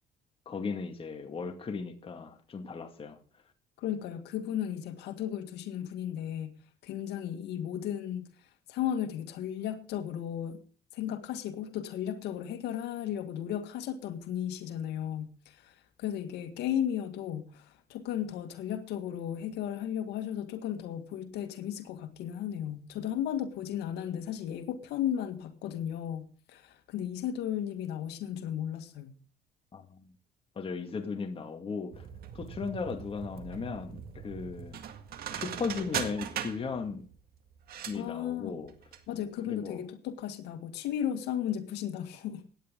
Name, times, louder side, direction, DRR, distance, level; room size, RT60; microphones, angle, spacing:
voice 1, 0.5-3.2 29.7-30.0 30.6-32.1 32.3-34.8 35.3-37.1 37.9-38.7 39.5-39.8, left 5 dB, 35° left, 2.2 m, -36 dB
voice 2, 3.8-6.6 6.8-10.6 10.9-29.1 37.9-38.6 39.1-42.4, left 10 dB, 80° left, 2.0 m, -35 dB
sound 1, 31.9-39.0 39.3-39.4, right 9 dB, 65° right, 1.9 m, -40 dB
17.5 x 9.9 x 3.8 m
cardioid pair, 110°, 17 cm